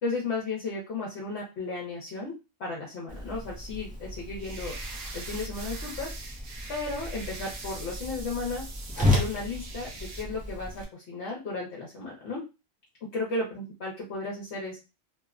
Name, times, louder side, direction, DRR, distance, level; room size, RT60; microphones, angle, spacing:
voice 1, 0.0-2.3 2.6-4.7 5.1-6.1 6.7-8.7 9.0-9.9 10.2-12.4 13.1-14.8, left 3 dB, 65° left, -4 dB, 1.0 m, -34 dB
Whoosh swoosh swish, 3.1-10.8, left 1 dB, 10° right, 0.4 m, -33 dB
sound 1, 4.4-10.2, right 3 dB, 85° right, 1.0 m, -43 dB
2.8 x 2.1 x 2.4 m, 0.27 s
omnidirectional pair, 1.3 m